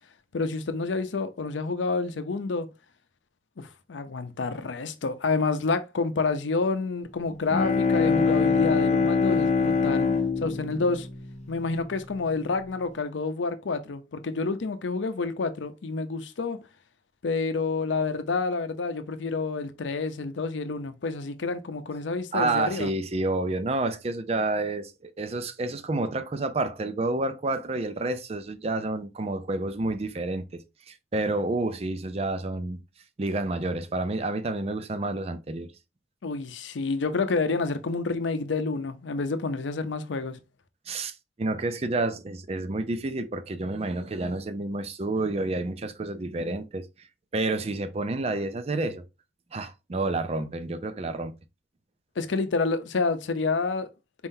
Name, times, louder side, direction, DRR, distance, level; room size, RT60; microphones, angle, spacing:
voice 1, 0.3-2.7 3.6-10.1 10.4-11.1 11.5-16.6 17.2-22.9 36.2-40.4 52.2-53.9, left 4 dB, 90° left, 0.6 m, -28 dB
Bowed string instrument, 7.3-12.0, left 5 dB, 40° left, 0.6 m, -24 dB
voice 2, 22.3-30.6 30.9-32.8 33.2-35.7 40.9-46.9 47.3-49.0 49.5-51.3, right 2 dB, 35° right, 0.4 m, -29 dB
4.5 x 3.7 x 2.6 m
head